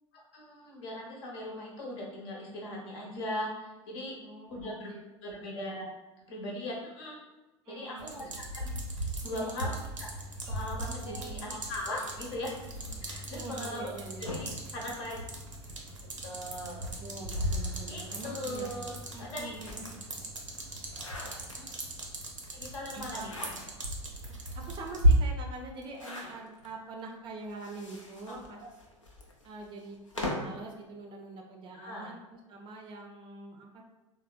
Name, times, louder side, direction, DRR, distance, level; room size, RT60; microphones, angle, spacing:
voice 1, 0.1-4.2 4.5-4.9 5.2-5.9 6.3-7.2 7.7-8.7 9.0-10.1 10.5-12.5 13.1-13.9 14.3-15.2 16.2-16.9 17.9-18.9 19.2-19.5 21.6-21.7 22.5-23.5 28.3-28.7 31.7-32.1, left 1 dB, 55° left, -2 dB, 0.8 m, -39 dB
voice 2, 4.2-5.0 5.4-5.5 7.7-8.4 9.2-9.7 11.0-12.3 13.3-14.2 17.0-18.8 19.1-19.9 22.9-23.3 24.2-28.6 29.4-33.8, right 2 dB, 30° right, 2 dB, 0.4 m, -45 dB
sound 1, 8.0-25.2, equal, 90° right, 0.5 m, -35 dB
sound 2, 9.8-21.0, equal, 10° left, 0.7 m, -49 dB
sound 3, 14.2-15.8 16.7-20.2 20.6-22.0 23.0-24.0 24.5-24.6 24.8-24.9 25.8-26.7 27.4-30.6, left 2 dB, 85° left, 0.4 m, -43 dB
3.3 x 2.0 x 2.3 m, 1.1 s
figure-of-eight pair, 75°, 16 cm